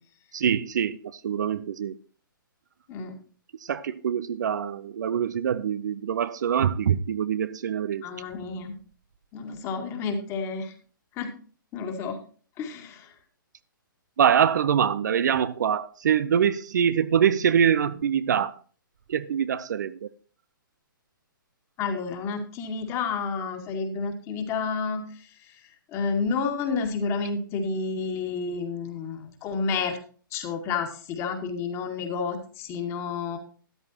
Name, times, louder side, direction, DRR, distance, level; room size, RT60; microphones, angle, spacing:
voice 1, 0.3-1.9 3.6-8.1 14.2-18.6 19.1-20.1, right 8 dB, 55° right, 0.7 m, -24 dB
voice 2, 8.0-8.7 9.3-10.7 11.2-11.3 11.7-12.2 12.6-13.1 21.8-25.6 25.9-30.0 30.3-33.4, left 5 dB, 25° left, 2.1 m, -30 dB
13.5 x 11.0 x 2.9 m
figure-of-eight pair, 125°, 12 cm